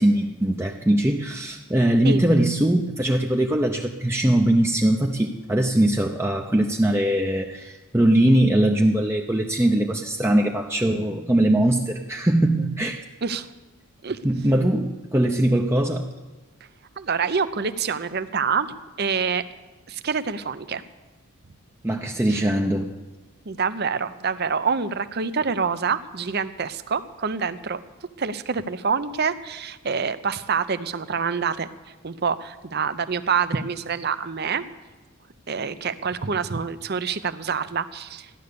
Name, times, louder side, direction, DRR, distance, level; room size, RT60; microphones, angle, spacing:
voice 1, 0.0-13.0 14.2-16.1 21.8-22.9, right 1 dB, 10° right, 2 dB, 0.6 m, -21 dB
voice 2, 17.0-19.4 19.9-20.8 22.3-22.5 23.5-27.8 28.2-31.7 32.0-34.6 35.5-38.3, right 5 dB, 50° right, 12 dB, 0.7 m, -26 dB
15.0 x 11.0 x 6.8 m, 1.2 s
head